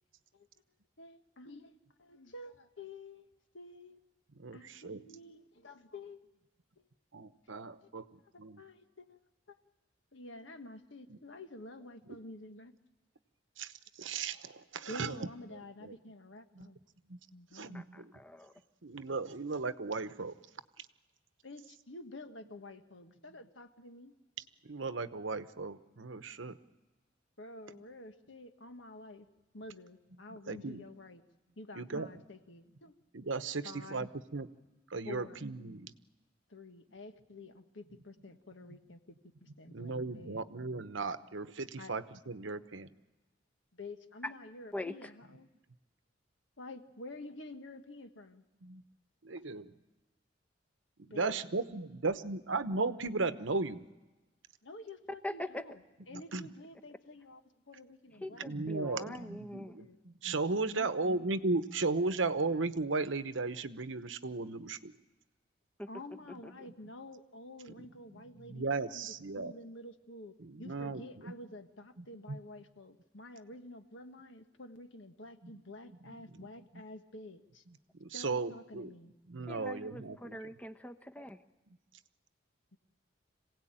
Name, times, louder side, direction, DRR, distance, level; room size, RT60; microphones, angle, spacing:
voice 1, 1.0-1.7 2.0-4.0 4.5-6.2 7.8-8.0 8.3-9.2 9.5-9.6 10.1-12.7 14.9-16.8 17.3-17.9 21.4-24.1 27.4-29.3 29.5-31.2 31.6-32.9 33.6-34.1 35.0-35.5 36.5-39.1 39.4-40.4 41.8-41.9 43.7-45.5 46.6-48.4 51.1-51.4 54.6-55.8 56.1-57.4 57.7-59.3 59.8-60.0 60.7-61.2 65.9-68.7 68.9-77.6 78.1-79.1, left 2 dB, 70° left, 8 dB, 1.5 m, -49 dB
voice 2, 4.4-5.0 7.1-8.1 8.4-8.6 11.1-11.2 13.6-16.0 16.5-16.7 17.1-17.2 17.5-18.1 18.8-20.3 20.8-20.9 24.4-26.6 30.3-30.8 31.8-32.1 33.1-34.5 34.9-35.9 39.7-42.9 48.6-48.8 49.2-49.7 51.0-53.8 56.1-56.5 58.4-64.9 67.7-69.5 70.4-71.3 72.3-72.4 75.4-75.6 76.1-76.5 78.0-78.9 79.3-80.4, right 3 dB, 75° right, 12 dB, 1.0 m, -36 dB
voice 3, 17.7-18.5 44.2-44.3 44.7-45.1 55.2-55.7 58.2-59.8 65.8-65.9 66.4-66.7 79.5-81.4, left 1 dB, 5° left, 8 dB, 0.9 m, -42 dB
26.5 x 17.5 x 8.9 m, 1.2 s
head